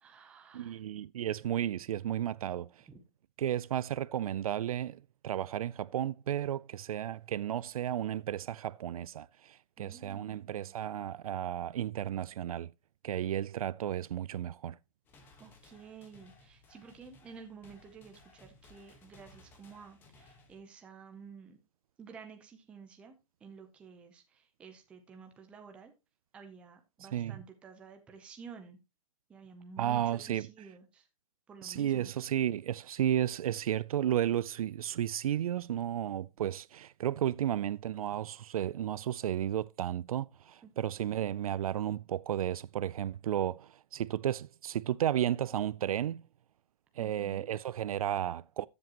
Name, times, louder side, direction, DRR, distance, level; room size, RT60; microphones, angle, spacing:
voice 1, 0.0-0.8 2.9-3.0 9.8-10.7 15.4-21.6 22.0-23.2 23.4-25.9 26.3-28.8 29.3-31.1 31.5-32.1 40.6-40.9 47.0-47.5, right 6 dB, 5° right, 0.6 m, -52 dB
voice 2, 0.5-2.9 3.4-12.7 13.0-14.8 27.0-27.4 29.8-30.5 31.6-46.3 47.0-48.7, right 11 dB, 85° right, 0.4 m, -33 dB
sound 1, 15.1-20.6, left 2 dB, 10° left, 1.2 m, -60 dB
13.5 x 7.5 x 2.9 m
hypercardioid pair, 175°, 18 cm